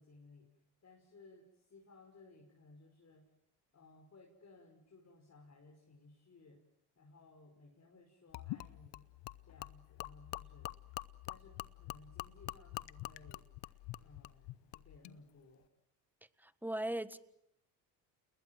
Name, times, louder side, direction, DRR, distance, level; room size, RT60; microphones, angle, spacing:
voice 1, 0.0-3.3 3.7-6.6 7.0-9.0 9.4-10.7 11.3-13.5 14.0-15.7, left 3 dB, 35° left, 0 dB, 5.8 m, -60 dB
Gurgling / Liquid, 8.3-15.2, left 17 dB, 65° left, 1.0 m, -46 dB
voice 2, 16.4-17.2, right 1 dB, 5° right, 13 dB, 1.6 m, -38 dB
29.0 x 21.0 x 7.6 m, 0.76 s
supercardioid pair, 80°, 47 cm